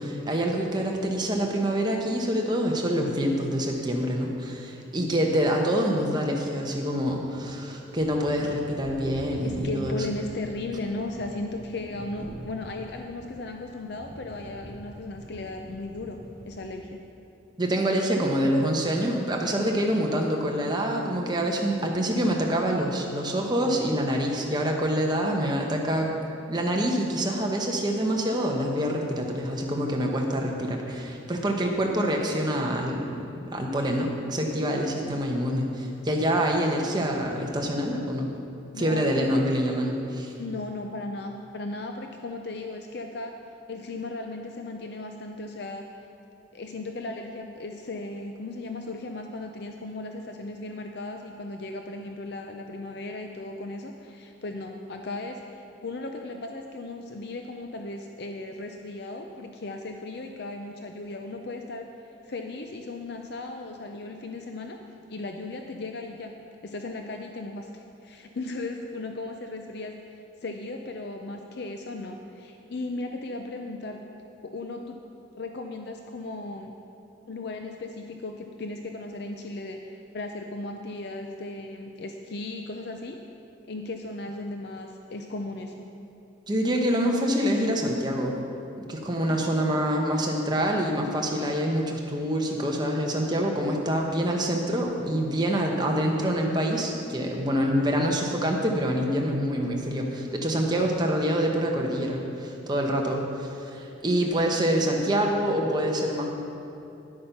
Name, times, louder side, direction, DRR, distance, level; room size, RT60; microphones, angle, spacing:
voice 1, 0.0-10.0 17.6-26.1 26.5-33.2 33.5-38.3 38.8-40.3 86.5-88.4 88.8-106.3, equal, 20° right, 0 dB, 1.0 m, -26 dB
sound 1, 7.7-16.7, right 1 dB, 40° right, 1.6 m, -44 dB
voice 2, 9.4-16.2 16.4-17.0 35.1-35.2 38.7-39.4 40.4-43.4 43.7-45.9 46.5-61.9 62.2-64.8 65.1-66.3 66.6-74.0 74.4-75.0 75.4-76.7 77.3-83.2 83.7-85.8 89.2-89.4 104.3-104.4, left 2 dB, 55° left, 4 dB, 0.5 m, -36 dB
10.5 x 8.6 x 5.7 m, 2.8 s
head